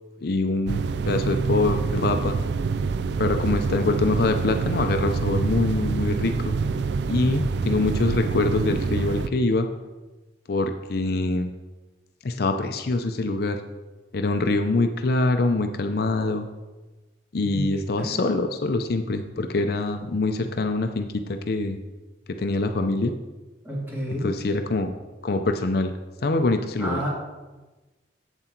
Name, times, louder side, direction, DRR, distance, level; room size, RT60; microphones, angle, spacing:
voice 1, 0.2-2.3 3.2-6.5 7.1-9.7 10.5-11.5 12.2-13.6 14.1-16.5 17.3-21.8 22.3-23.2 24.2-24.9 25.2-25.9 26.2-27.0, left 2 dB, 55° left, 7 dB, 0.5 m, -24 dB
sound 1, 0.7-9.3, right 4 dB, 65° right, 0.4 m, -26 dB
voice 2, 18.0-18.3 23.6-24.3 26.8-27.1, equal, 10° right, -5 dB, 2.6 m, -30 dB
8.1 x 7.6 x 4.4 m, 1.2 s
head